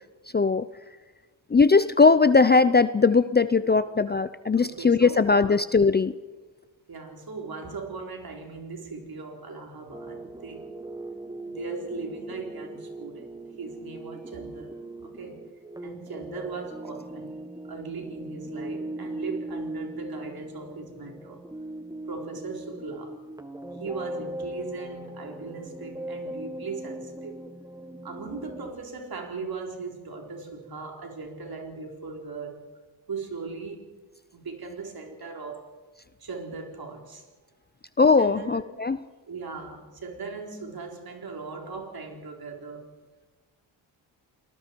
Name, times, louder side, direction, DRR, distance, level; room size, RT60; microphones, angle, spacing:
voice 1, 0.3-0.7 1.5-6.1 38.0-39.0, left 4 dB, 25° left, 14 dB, 0.6 m, -19 dB
voice 2, 4.6-5.5 6.9-10.7 11.4-15.4 15.8-17.4 17.7-21.4 22.1-23.2 23.8-27.4 28.0-32.6 33.1-33.9 34.3-35.7 36.2-37.3 38.2-38.8 39.2-42.9, right 4 dB, 55° right, 2 dB, 4.1 m, -39 dB
sound 1, 9.9-28.7, right 1 dB, 10° right, 1.5 m, -39 dB
29.0 x 19.5 x 4.6 m, 1.3 s
cardioid pair, 85°, 44 cm